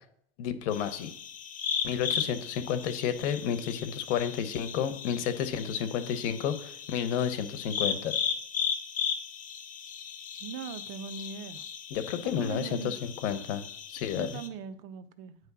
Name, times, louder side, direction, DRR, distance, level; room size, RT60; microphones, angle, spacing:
voice 1, 0.4-1.1 1.8-8.2 11.9-13.6 13.9-14.4, left 8 dB, 80° left, 11 dB, 1.0 m, -31 dB
sound 1, 0.7-14.5, left 7 dB, 25° left, 0.6 m, -36 dB
voice 2, 10.4-11.6 12.2-13.0 14.1-15.4, right 7 dB, 60° right, 11 dB, 0.7 m, -40 dB
9.1 x 3.2 x 6.1 m, 0.66 s
supercardioid pair, 145°, 34 cm